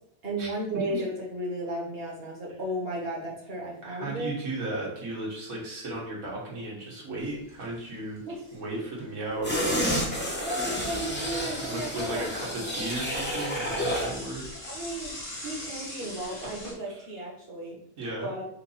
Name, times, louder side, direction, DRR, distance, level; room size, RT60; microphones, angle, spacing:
voice 1, 0.2-4.3 8.2-8.4 10.4-12.2 12.7-12.9 14.7-17.8 18.2-18.5, right 1 dB, 45° right, -2 dB, 1.4 m, -34 dB
voice 2, 3.8-8.2 8.5-9.8 11.6-14.4 15.4-15.6 18.0-18.3, right 2 dB, 70° right, -5 dB, 1.8 m, -35 dB
Bicycle / Mechanisms, 7.2-7.8 8.2-8.3 8.5-8.6 9.3-10.4 10.8-16.7, left 1 dB, 75° left, 1.9 m, -43 dB
sound 1, 9.4-14.2 14.5-14.7, equal, 10° left, 0.8 m, -30 dB
4.6 x 2.6 x 4.0 m, 0.72 s
omnidirectional pair, 1.5 m